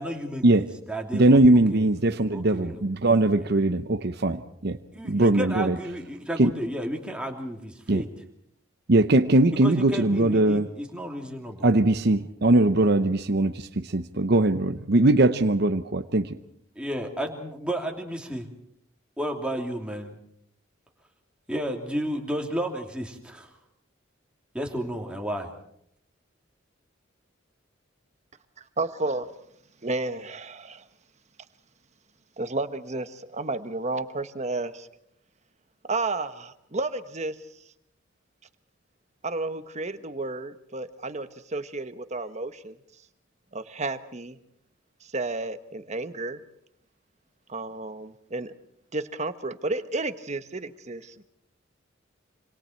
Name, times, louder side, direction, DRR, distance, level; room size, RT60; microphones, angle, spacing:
voice 1, 0.0-1.4 1.7-1.8 2.3-2.8 3.3-3.5 4.9-8.1 9.6-11.7 16.7-18.5 19.2-20.1 21.5-23.6 24.5-25.5, equal, 5° right, 1 dB, 2.9 m, -32 dB
voice 2, 1.1-4.8 5.0-5.8 6.4-6.5 7.9-8.1 8.9-10.7 11.6-16.4, right 2 dB, 55° right, 9 dB, 0.8 m, -21 dB
voice 3, 28.8-29.3 29.8-30.8 32.4-34.9 35.9-37.4 39.2-42.7 43.5-44.4 45.0-46.4 47.5-48.5 48.9-51.2, right 2 dB, 35° right, 10 dB, 1.2 m, -32 dB
26.5 x 26.0 x 4.5 m, 0.71 s
head